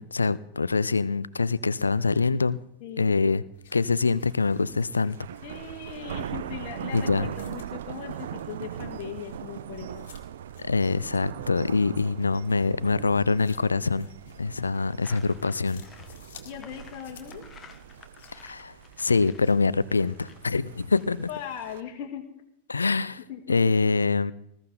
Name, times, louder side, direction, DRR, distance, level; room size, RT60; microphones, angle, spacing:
voice 1, 0.0-2.6 3.0-3.4 3.7-5.2 6.9-7.3 10.6-14.1 14.4-15.8 18.3-21.3 22.7-23.2 23.5-24.3, left 4 dB, 75° left, 18 dB, 0.5 m, -24 dB
voice 2, 2.8-3.2 5.4-10.1 16.4-17.5 21.3-22.3 23.3-23.6, left 9 dB, 40° left, 0 dB, 2.0 m, -39 dB
sound 1, 3.5-19.7, left 6 dB, 60° left, 2.1 m, -56 dB
Thunder, 4.0-21.8, right 10 dB, 60° right, 0.6 m, -41 dB
sound 2, 15.0-21.7, left 6 dB, 20° left, 1.4 m, -53 dB
20.0 x 14.0 x 3.9 m, 0.76 s
figure-of-eight pair, 90°, 0 cm